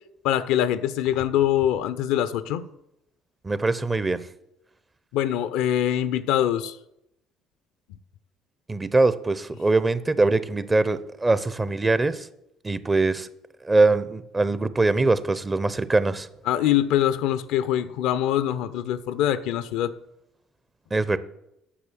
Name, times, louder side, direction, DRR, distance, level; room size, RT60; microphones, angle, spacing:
voice 1, 0.2-2.6 5.1-6.8 16.5-19.9, left 11 dB, 65° left, 14 dB, 0.5 m, -23 dB
voice 2, 3.4-4.3 8.7-12.3 12.6-13.3 13.6-16.3 20.9-21.2, right 3 dB, 20° right, 15 dB, 0.7 m, -22 dB
8.5 x 6.2 x 7.5 m, 0.81 s
hypercardioid pair, 55°, 0 cm